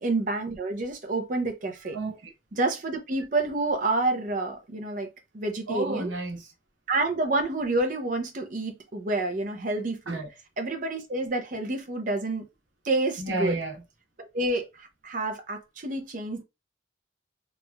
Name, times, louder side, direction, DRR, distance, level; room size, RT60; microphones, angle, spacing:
voice 1, 0.0-2.0 2.5-5.1 5.3-6.1 6.9-10.2 10.6-12.4 12.8-13.6 14.2-16.4, right 2 dB, 45° right, 0.6 m, -28 dB
voice 2, 1.9-2.3 5.7-6.5 10.1-10.3 13.2-13.8, right 2 dB, 85° right, 1.0 m, -31 dB
3.0 x 2.5 x 2.2 m
head